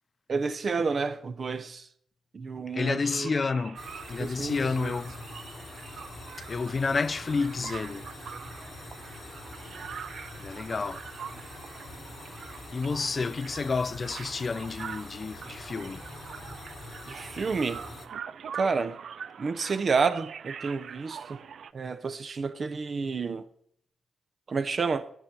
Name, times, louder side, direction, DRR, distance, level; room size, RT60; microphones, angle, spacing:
voice 1, 0.3-1.9 2.3-3.3 4.2-4.9 17.1-17.8 18.5-19.0 19.4-21.4 21.7-23.5 24.5-25.1, right 4 dB, 50° right, 0.7 m, -30 dB
voice 2, 2.7-3.8 4.1-5.1 6.5-8.0 10.4-11.1 12.7-16.0, left 4 dB, 45° left, 0.3 m, -30 dB
sound 1, 3.0-21.7, right 7 dB, 65° right, 0.3 m, -44 dB
sound 2, 3.8-18.1, left 3 dB, 60° left, 1.2 m, -45 dB
11.5 x 4.5 x 5.4 m
supercardioid pair, 60°, 0 cm